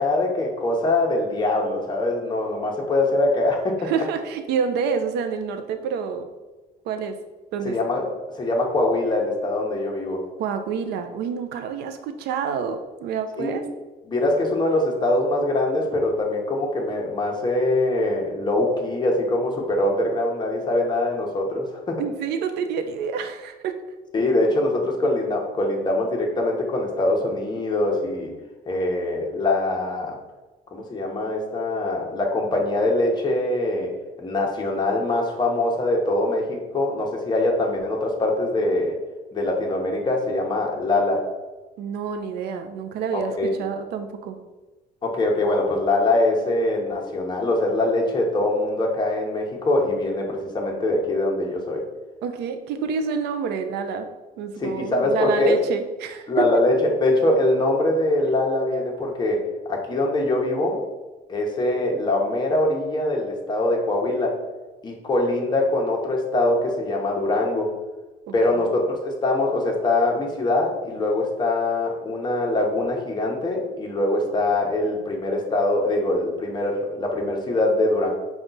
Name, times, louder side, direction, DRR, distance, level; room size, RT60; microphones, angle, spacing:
voice 1, 0.0-3.9 7.6-8.1 8.3-10.2 13.4-13.7 14.1-22.0 24.1-28.3 28.7-30.2 30.7-33.9 34.2-39.0 39.3-41.2 43.1-43.5 45.0-51.8 54.6-55.6 56.3-59.4 59.7-60.8 61.3-64.4 64.8-67.7 68.3-78.1, left 2 dB, 25° left, 0 dB, 1.0 m, -23 dB
voice 2, 3.8-6.3 6.9-7.2 7.5-7.8 10.4-13.6 22.0-23.8 41.8-44.4 52.2-54.1 54.4-56.6 68.3-68.7, right 6 dB, 75° right, 8 dB, 0.5 m, -28 dB
5.3 x 2.4 x 3.9 m, 1.2 s
cardioid pair, 110°, 17 cm